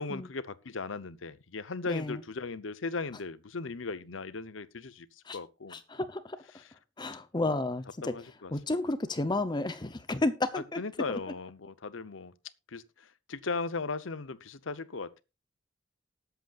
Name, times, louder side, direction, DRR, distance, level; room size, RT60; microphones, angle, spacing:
voice 1, 0.0-5.1 5.3-5.8 7.4-7.5 8.1-8.5 10.5-12.3 12.7-15.2, left 4 dB, 90° left, 0.9 m, -37 dB
voice 2, 1.9-2.2 5.3-5.4 5.7-6.4 7.0-8.1 8.5-10.8 11.1-11.2, left 2 dB, 25° left, 0.7 m, -32 dB
19.0 x 8.1 x 2.5 m
head